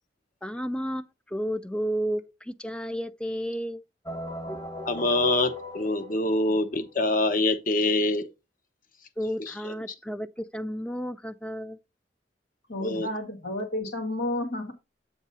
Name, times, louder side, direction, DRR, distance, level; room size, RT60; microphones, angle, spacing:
voice 1, 0.4-3.8 9.2-11.8, equal, 5° left, 0.4 m, -32 dB
sound 1, 4.1-6.9, left 2 dB, 20° left, 1.0 m, -38 dB
voice 2, 4.8-8.3 9.6-9.7 12.8-13.1, left 2 dB, 50° left, 1.0 m, -25 dB
voice 3, 12.7-14.7, left 1 dB, 80° left, 1.8 m, -31 dB
8.2 x 3.6 x 5.4 m
head